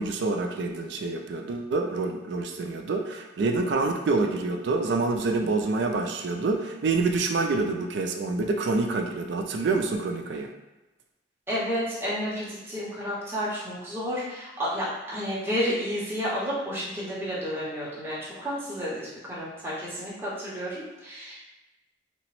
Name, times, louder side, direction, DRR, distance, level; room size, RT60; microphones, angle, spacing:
voice 1, 0.0-10.5, right 3 dB, 65° right, 3 dB, 0.3 m, -27 dB
voice 2, 11.5-21.4, equal, 10° right, -8 dB, 0.7 m, -31 dB
2.8 x 2.0 x 2.9 m, 1.0 s
head